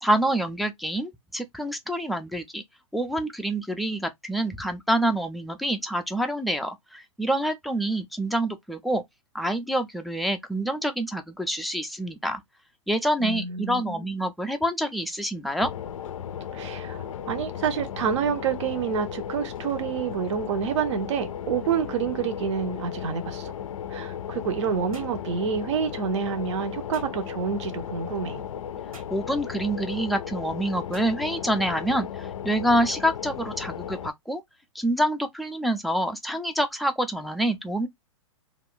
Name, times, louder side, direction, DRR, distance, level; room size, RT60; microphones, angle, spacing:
voice 1, 0.0-2.6 2.9-9.0 9.3-12.4 12.9-15.7 29.1-34.4 34.7-37.9, right 1 dB, ahead, 0.3 m, -27 dB
voice 2, 13.2-14.0 16.5-23.5 23.9-28.4, right 7 dB, 60° right, 0.7 m, -28 dB
sound 1, 15.6-34.1, left 9 dB, 75° left, 0.4 m, -35 dB
sound 2, 24.9-25.2 26.9-27.2 28.9-29.2 30.9-31.2, right 3 dB, 90° right, 1.3 m, -48 dB
2.4 x 2.2 x 3.5 m
hypercardioid pair, 110°, 17 cm